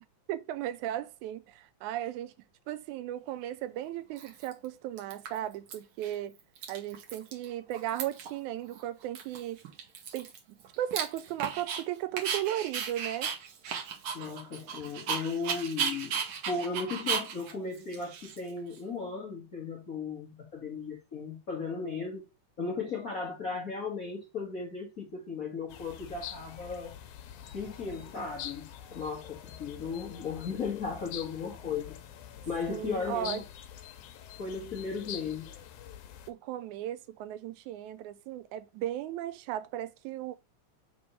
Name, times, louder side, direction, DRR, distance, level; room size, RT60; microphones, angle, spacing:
voice 1, 0.3-2.3 2.7-6.4 6.7-9.6 10.1-10.3 10.8-13.3 32.7-33.4 36.3-40.3, right 12 dB, 80° right, 2.0 m, -36 dB
Dog, 3.4-3.5 4.2-4.7 5.0-5.7 6.0-6.1 6.4-7.5 7.7-8.4 8.7-8.8 9.2-11.8 12.2-18.8, right 7 dB, 60° right, 1.5 m, -35 dB
voice 2, 14.1-16.2 16.5-22.2 22.6-26.9 27.5-31.9 32.4-33.4 34.4-35.5, left 4 dB, 45° left, 1.2 m, -36 dB
sound 1, 25.7-36.3, left 10 dB, 80° left, 2.2 m, -45 dB
5.1 x 3.5 x 5.4 m
omnidirectional pair, 3.4 m